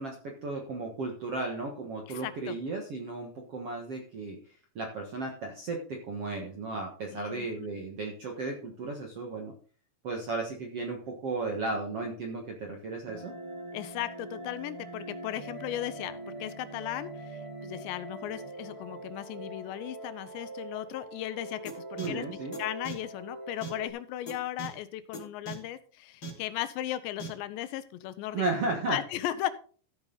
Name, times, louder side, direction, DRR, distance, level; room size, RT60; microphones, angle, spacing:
voice 1, 0.0-4.4 4.7-9.5 10.0-13.3 22.0-22.5 28.3-29.0, right 3 dB, 60° right, 1 dB, 1.5 m, -34 dB
voice 2, 2.1-2.6 7.1-7.7 13.7-22.3 22.6-28.4 28.9-29.5, left 13 dB, 85° left, 13 dB, 3.1 m, -36 dB
sound 1, 13.1-23.9, right 1 dB, 80° right, 1.2 m, -43 dB
sound 2, 21.6-21.7 22.0-22.1 22.5-22.6 22.8-22.9 23.6-23.7 24.3-24.4 24.6-24.7 25.1-25.2 25.4-25.5 26.2-26.3 27.2-27.3, right 1 dB, 25° left, 3.2 m, -38 dB
14.0 x 8.2 x 4.0 m, 0.42 s
omnidirectional pair, 5.0 m